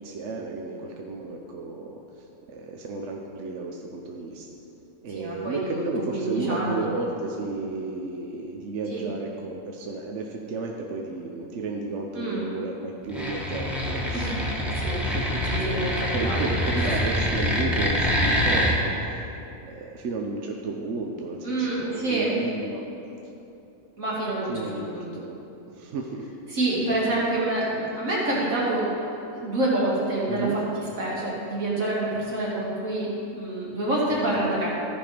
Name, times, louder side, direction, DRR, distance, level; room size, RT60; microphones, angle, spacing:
voice 1, 0.0-4.5 5.0-14.7 15.0-15.4 16.1-19.2 19.6-22.8 24.5-25.4 25.7-26.3 30.3-30.6, right 3 dB, 65° right, 0 dB, 1.0 m, -33 dB
voice 2, 5.1-6.9 8.9-9.1 12.1-12.5 14.1-14.4 14.7-15.0 15.5-16.4 21.4-22.3 24.0-25.1 26.5-29.0 29.3-34.7, right 2 dB, 80° right, -7 dB, 2.9 m, -27 dB
sound 1, 13.1-18.7, equal, ahead, 1.3 m, -25 dB
14.5 x 5.4 x 5.1 m, 2.8 s
omnidirectional pair, 1.4 m